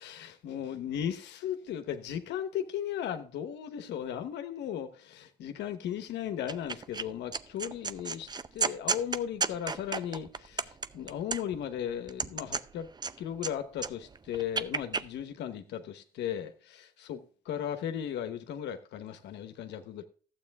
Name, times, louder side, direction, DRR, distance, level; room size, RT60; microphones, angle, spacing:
voice 1, 0.0-12.9 13.2-20.0, left 9 dB, 75° left, 1.1 m, -36 dB
sound 1, 6.5-7.0 7.3-11.7 12.1-13.5 13.8-15.0, right 4 dB, 25° right, 0.5 m, -33 dB
12.0 x 8.4 x 3.5 m
supercardioid pair, 75°, 18 cm